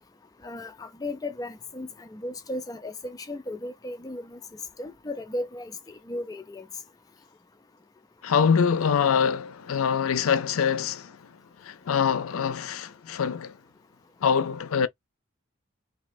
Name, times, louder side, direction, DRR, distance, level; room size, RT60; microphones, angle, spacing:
voice 1, 0.4-4.4 4.8-6.6, left 1 dB, 15° left, 0.3 m, -35 dB
voice 2, 8.2-11.3 11.6-13.6 14.2-14.9, left 6 dB, 85° left, 0.5 m, -24 dB
3.2 x 2.7 x 2.5 m
head